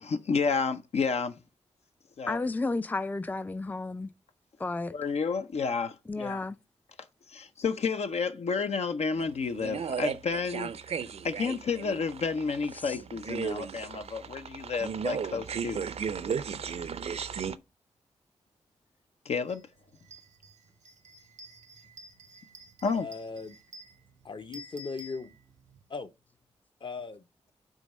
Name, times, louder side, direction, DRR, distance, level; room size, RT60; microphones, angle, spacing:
voice 1, 0.0-1.3 2.2-2.4 4.9-6.4 7.3-10.7 11.2-15.8 19.3-19.6 22.8-23.1, left 5 dB, 65° left, 0.6 m, -30 dB
voice 2, 2.3-4.1 4.6-4.9 6.1-6.6 12.7-13.0, left 3 dB, 15° left, 0.4 m, -32 dB
sound 1, 9.2-17.6, right 6 dB, 60° right, 0.6 m, -35 dB
sound 2, 19.5-19.6 20.0-25.8, equal, 85° right, 1.0 m, -51 dB
voice 3, 22.8-23.6 24.2-25.3 25.9-26.1 26.8-27.3, left 4 dB, 45° left, 0.9 m, -38 dB
6.3 x 3.7 x 5.3 m
supercardioid pair, 40°, 12 cm